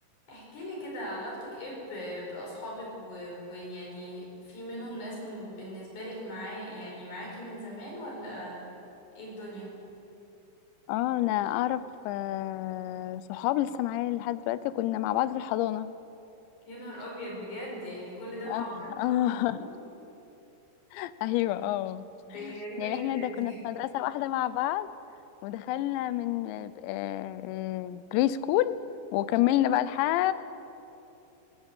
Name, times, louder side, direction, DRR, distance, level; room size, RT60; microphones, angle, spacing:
voice 1, 0.3-8.7 9.1-9.7 16.7-19.7 22.2-23.6, equal, 45° left, -3 dB, 6.4 m, -39 dB
voice 2, 10.9-15.9 18.5-18.7 19.0-19.7 20.9-22.0 22.4-24.9 25.4-28.8 29.1-30.3, left 14 dB, 90° left, 15 dB, 3.0 m, -29 dB
18.5 x 17.5 x 8.2 m, 2.8 s
omnidirectional pair, 5.0 m